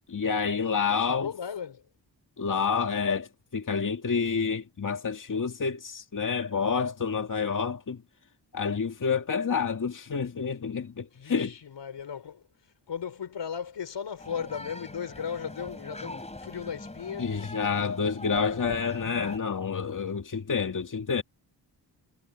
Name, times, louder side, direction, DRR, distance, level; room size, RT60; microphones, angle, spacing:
voice 1, 0.1-1.3 2.4-8.0 8.5-11.5 17.2-21.2, left 5 dB, 45° left, 2.2 m, -28 dB
voice 2, 0.9-1.9 11.1-18.1 18.4-18.8, left 7 dB, 75° left, 5.5 m, -37 dB
sound 1, 14.2-19.4, left 2 dB, 15° left, 3.6 m, -42 dB
cardioid pair, 85°, 43 cm